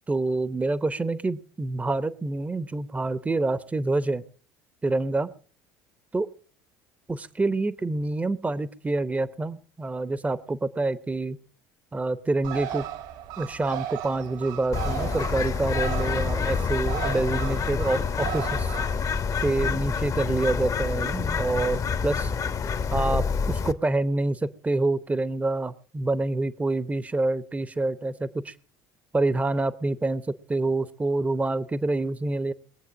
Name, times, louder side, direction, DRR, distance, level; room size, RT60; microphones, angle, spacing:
voice 1, 0.1-4.2 4.8-5.3 6.1-6.3 7.1-11.4 11.9-12.8 13.4-18.8 19.4-22.3 22.9-28.5 29.1-30.2 30.5-32.5, right 2 dB, 15° right, 15 dB, 0.9 m, -27 dB
Bird, 12.4-19.8, right 12 dB, 75° right, 2.3 m, -36 dB
Bird 2, 14.7-23.7, left 5 dB, 40° left, 1.0 m, -27 dB
21.5 x 8.1 x 6.4 m, 0.43 s
hypercardioid pair, 65°, 9 cm